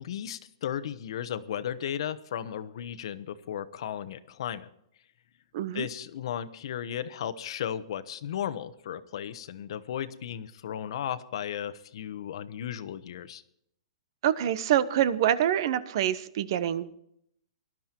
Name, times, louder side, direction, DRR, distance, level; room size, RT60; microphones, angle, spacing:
voice 1, 0.0-4.7 5.7-13.4, left 9 dB, 60° left, 13 dB, 1.1 m, -35 dB
voice 2, 5.5-5.9 14.2-16.9, right 11 dB, 50° right, 16 dB, 1.0 m, -26 dB
19.0 x 12.0 x 4.5 m, 0.72 s
hypercardioid pair, 160°, 3 cm